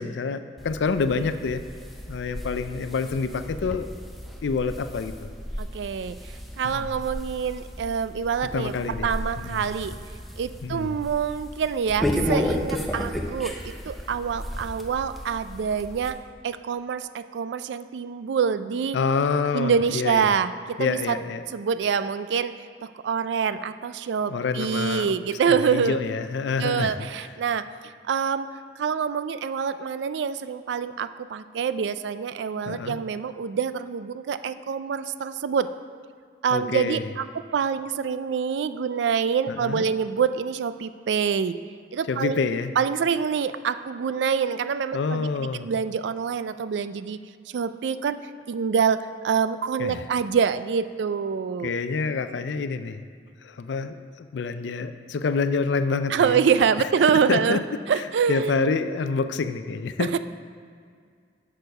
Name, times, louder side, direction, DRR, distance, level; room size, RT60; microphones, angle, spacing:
voice 1, 0.0-1.6 2.1-3.9 4.4-5.3 6.6-6.9 8.5-9.1 9.4-9.6 10.6-10.9 18.9-20.3 20.8-21.4 24.3-25.1 25.5-27.1 32.7-33.0 36.5-37.1 39.5-39.8 42.1-42.7 44.9-45.7 49.8-50.0 51.6-53.1 53.4-56.4 57.3-57.6 58.3-60.1, left 4 dB, 85° left, 10 dB, 0.4 m, -27 dB
sound 1, 0.6-16.1, equal, ahead, 0.5 m, -34 dB
voice 2, 5.6-6.2 6.6-8.8 9.0-10.0 10.4-13.6 13.9-16.2 16.4-19.0 19.5-21.2 21.5-22.5 22.8-26.0 26.6-28.5 28.8-35.7 36.4-41.6 41.9-42.4 42.8-47.2 47.5-48.2 48.5-51.7 56.1-57.6 57.9-58.6 60.0-60.2, right 6 dB, 80° right, 13 dB, 0.3 m, -26 dB
6.8 x 6.3 x 5.3 m, 2.1 s
head